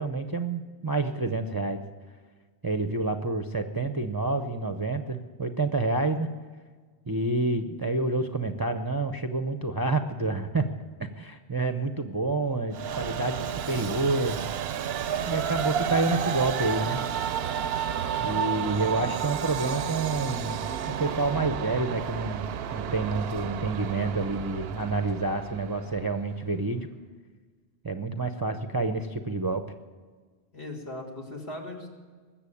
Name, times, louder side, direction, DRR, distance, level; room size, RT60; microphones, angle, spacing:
voice 1, 0.0-1.8 2.6-6.3 7.1-10.7 11.2-14.4 15.3-17.0 18.2-20.7 21.0-26.9 27.8-29.7, right 3 dB, 25° right, 5 dB, 0.6 m, -28 dB
Train, 12.7-26.2, right 8 dB, 70° right, 0.8 m, -31 dB
voice 2, 30.5-31.9, left 1 dB, 65° left, -1 dB, 2.8 m, -38 dB
20.5 x 7.5 x 8.5 m, 1.5 s
omnidirectional pair, 1.1 m